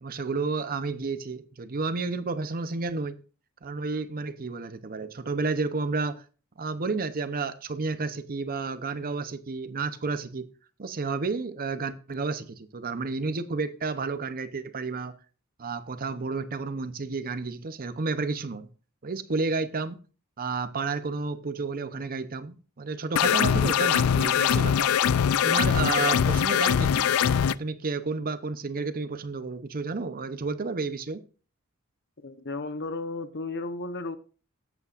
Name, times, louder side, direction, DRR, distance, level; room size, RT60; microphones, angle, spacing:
voice 1, 0.0-3.2 3.6-6.2 6.6-10.5 10.8-15.1 15.6-18.7 19.0-20.0 20.4-24.9 25.4-27.1 27.5-31.2, right 4 dB, 40° right, 0.7 m, -31 dB
sound 1, 23.2-27.5, left 8 dB, 75° left, 0.4 m, -22 dB
voice 2, 32.2-34.2, left 3 dB, 55° left, 1.0 m, -34 dB
18.0 x 8.3 x 2.5 m
head